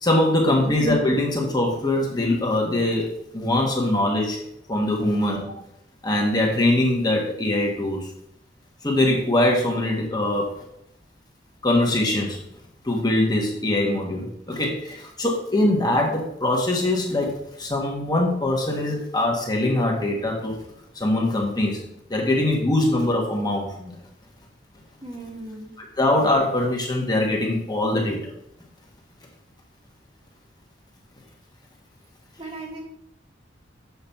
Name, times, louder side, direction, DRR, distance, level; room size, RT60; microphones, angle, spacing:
voice 1, 0.0-4.4 4.7-5.4 6.0-8.1 8.8-10.5 11.6-12.4 12.8-20.6 20.9-21.8 22.1-23.9 26.0-28.3, left 1 dB, 20° left, -1 dB, 1.2 m, -22 dB
voice 2, 25.0-25.7 32.4-32.8, right 2 dB, 35° right, -2 dB, 1.7 m, -36 dB
6.9 x 3.8 x 5.7 m, 0.77 s
head